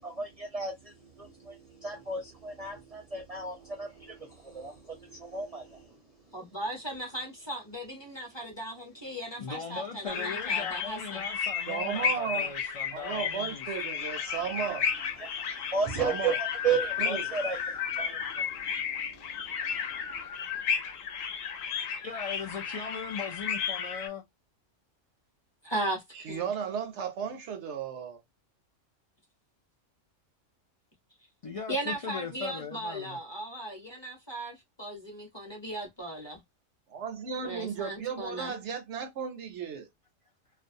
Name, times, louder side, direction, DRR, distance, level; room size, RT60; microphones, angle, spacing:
voice 1, 0.0-0.7 1.2-5.8 15.2-17.6 18.0-18.5, right 5 dB, 40° right, 0.6 m, -33 dB
voice 2, 6.3-11.2 25.6-26.5 31.7-36.4 37.4-38.5, right 1 dB, 25° left, 0.8 m, -37 dB
voice 3, 9.4-13.7 22.0-24.2 31.4-33.2, left 5 dB, 65° left, 0.3 m, -39 dB
sound 1, 10.1-24.1, left 7 dB, 85° left, 1.0 m, -33 dB
voice 4, 11.7-12.5 12.9-14.9 16.0-16.4 17.0-17.2 26.1-28.2 36.9-39.9, right 7 dB, 70° right, 0.8 m, -35 dB
2.4 x 2.2 x 2.5 m
omnidirectional pair, 1.3 m